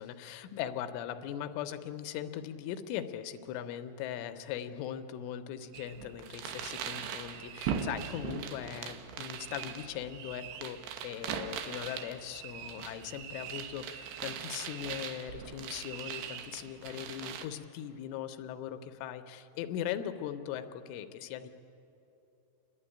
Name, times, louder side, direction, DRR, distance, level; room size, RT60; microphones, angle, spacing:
voice 1, 0.0-21.5, left 10 dB, 80° left, 9 dB, 3.2 m, -40 dB
sound 1, 5.7-17.5, right 8 dB, 75° right, 2.5 m, -40 dB
28.5 x 12.0 x 10.0 m, 2.9 s
omnidirectional pair, 5.8 m